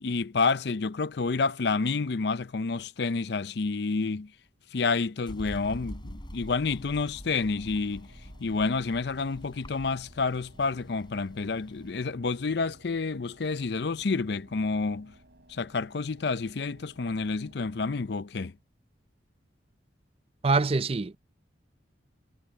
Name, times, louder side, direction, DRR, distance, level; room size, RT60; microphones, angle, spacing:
voice 1, 0.0-4.3 4.7-8.1 8.4-15.1 15.5-18.5, left 4 dB, 60° left, 0.5 m, -29 dB
sound 1, 5.3-11.9, equal, 25° left, 6.5 m, -45 dB
sound 2, 6.8-18.5, right 1 dB, 60° right, 5.6 m, -57 dB
voice 2, 20.4-21.2, right 3 dB, 30° right, 0.5 m, -24 dB
head